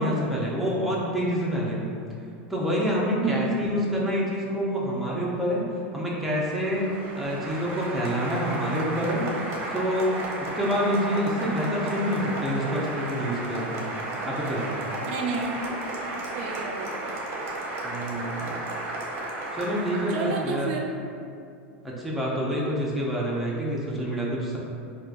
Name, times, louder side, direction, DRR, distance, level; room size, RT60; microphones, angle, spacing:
voice 1, 0.0-1.9 2.5-5.6 5.9-6.8 7.1-9.3 9.7-10.2 10.5-13.9 14.2-14.8 17.8-18.5 19.5-20.7 21.8-24.6, equal, ahead, -6 dB, 0.7 m, -27 dB
voice 2, 3.2-3.6 15.1-15.5 16.2-17.1 20.1-20.9, right 5 dB, 65° right, 1 dB, 0.4 m, -30 dB
Applause, 6.2-20.7, right 2 dB, 40° right, 0.8 m, -34 dB
4.2 x 2.4 x 2.5 m, 2.5 s
hypercardioid pair, 110°, 7 cm